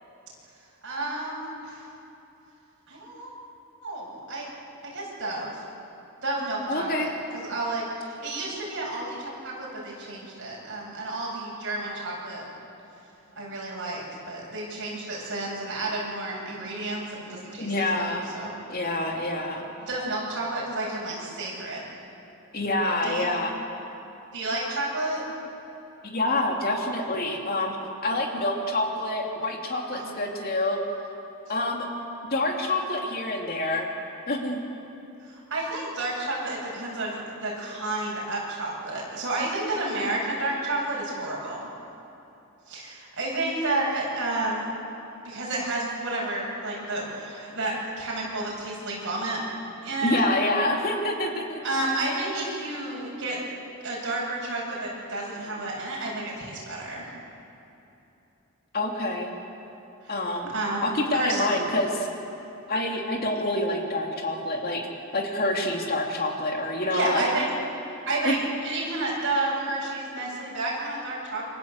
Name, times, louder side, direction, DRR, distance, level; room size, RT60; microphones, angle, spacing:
voice 1, 0.8-1.9 2.9-3.3 3.8-4.5 4.8-5.6 6.2-12.4 13.4-18.5 19.8-21.8 23.0-23.4 24.3-25.2 29.9-30.2 35.2-41.7 42.7-44.7 45.2-49.4 49.8-50.2 51.6-53.5 53.8-57.1 60.0-60.3 60.5-61.6 66.9-67.5 68.1-71.5, right 2 dB, 60° right, -4 dB, 7.9 m, -31 dB
voice 2, 6.7-7.1 17.6-18.3 18.7-19.6 22.5-23.5 26.0-27.8 28.0-30.8 31.5-31.9 32.3-33.9 34.3-34.6 50.0-51.6 58.7-59.3 60.1-60.5 60.8-62.1 62.7-64.9 65.1-67.2 68.2-68.4, left 1 dB, 45° left, 1 dB, 3.1 m, -27 dB
28.0 x 25.0 x 8.2 m, 2.9 s
head